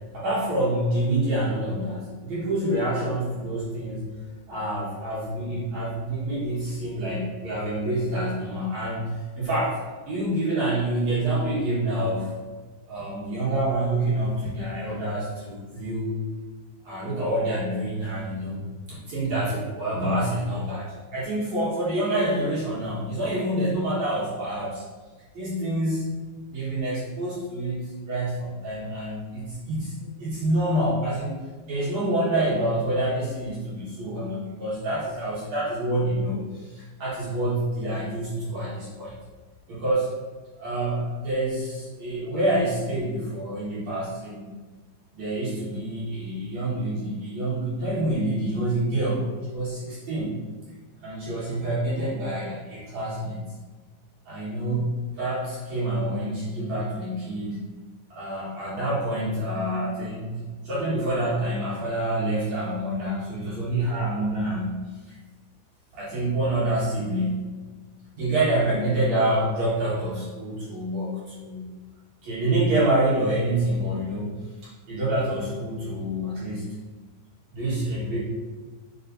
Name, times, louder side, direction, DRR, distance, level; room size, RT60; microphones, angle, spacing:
voice 1, 0.1-4.0 4.5-9.8 10.1-12.3 12.9-16.2 16.8-24.8 25.3-26.1 26.5-31.3 31.7-39.1 39.7-40.1 40.6-44.5 45.2-50.4 51.0-53.5 54.3-57.7 58.1-60.4 60.6-65.2 65.9-67.6 68.1-71.7 72.2-74.3 74.9-76.7 77.5-78.2, right 1 dB, 55° right, -8 dB, 2.2 m, -27 dB
8.5 x 5.6 x 2.7 m, 1.4 s
omnidirectional pair, 5.1 m